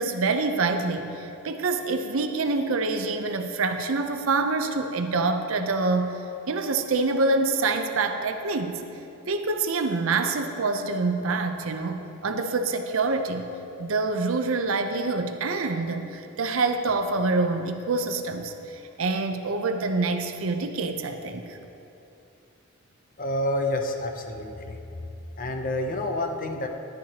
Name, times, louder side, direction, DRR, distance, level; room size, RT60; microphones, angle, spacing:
voice 1, 0.0-6.2 6.5-8.8 9.3-13.5 13.8-21.6, right 3 dB, 70° right, 7 dB, 0.6 m, -26 dB
voice 2, 23.2-24.8 25.4-26.7, left 1 dB, 40° left, 4 dB, 0.6 m, -28 dB
11.0 x 10.5 x 2.9 m, 2.8 s
head